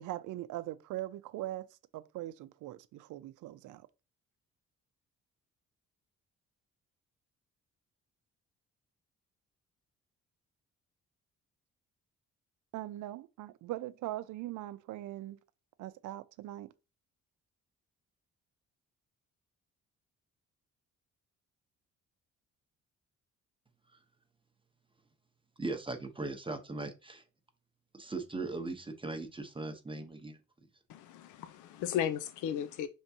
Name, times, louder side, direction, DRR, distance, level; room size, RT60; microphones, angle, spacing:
voice 1, 0.0-3.9 12.7-15.4 15.8-16.7, right 15 dB, 80° right, 0.5 m, -41 dB
voice 2, 25.6-27.2 27.9-30.4, right 3 dB, 15° right, 0.8 m, -39 dB
voice 3, 30.9-32.9, left 9 dB, 80° left, 0.5 m, -35 dB
5.1 x 3.5 x 2.7 m
cardioid pair, 90°, 30 cm